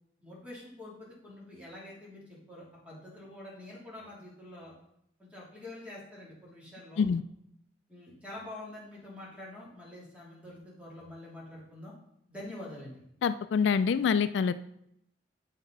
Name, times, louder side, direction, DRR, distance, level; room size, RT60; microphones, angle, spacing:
voice 1, 0.2-4.8 5.2-7.0 7.9-11.9 12.3-13.0, left 1 dB, 5° right, -6 dB, 3.1 m, -46 dB
voice 2, 13.2-14.5, left 6 dB, 70° left, 14 dB, 0.3 m, -26 dB
8.2 x 5.8 x 5.3 m, 0.76 s
head